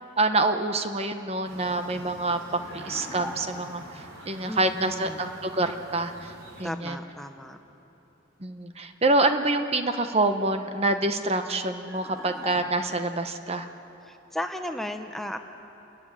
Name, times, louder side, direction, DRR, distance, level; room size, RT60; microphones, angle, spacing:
voice 1, 0.0-6.3 6.6-7.0 8.4-13.7, right 2 dB, 30° right, 8 dB, 0.9 m, -26 dB
sound 1, 1.4-6.6, right 1 dB, 90° right, 5.4 m, -45 dB
sound 2, 2.6-3.8 11.9-13.2, left 1 dB, 15° right, 4.5 m, -41 dB
voice 2, 4.5-5.3 6.6-7.6 14.0-15.4, left 1 dB, ahead, 5 dB, 0.8 m, -35 dB
28.5 x 14.0 x 9.8 m, 3.0 s
head